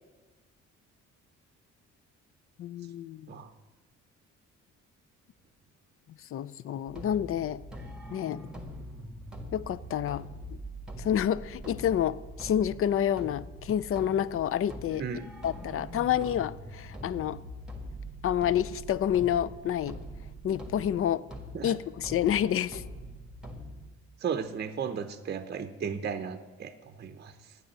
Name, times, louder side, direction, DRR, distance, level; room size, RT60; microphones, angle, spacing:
voice 1, 2.6-3.3 6.3-7.6 8.1-8.4 9.5-10.2 11.0-15.0 15.4-17.4 18.2-20.0 20.4-21.2 21.6-22.8, left 10 dB, 50° left, 0.4 m, -28 dB
sound 1, 6.9-23.8, equal, ahead, 1.5 m, -43 dB
voice 2, 24.2-27.6, right 6 dB, 35° right, 0.7 m, -35 dB
9.8 x 8.0 x 7.4 m
cardioid pair, 90°, 30 cm